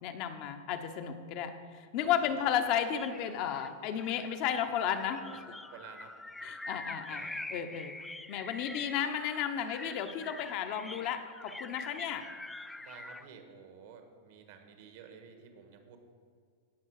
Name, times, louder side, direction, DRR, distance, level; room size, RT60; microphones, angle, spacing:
voice 1, 0.0-5.4 6.4-7.2 7.5-8.0 8.3-12.2, left 9 dB, 50° left, 8 dB, 0.9 m, -33 dB
sound 1, 2.9-13.3, left 2 dB, 5° left, 0.3 m, -45 dB
voice 2, 5.2-6.1 7.1-7.4 12.8-16.0, right 7 dB, 65° right, 6 dB, 1.5 m, -52 dB
17.0 x 5.6 x 4.8 m, 2.2 s
hypercardioid pair, 125°, 0 cm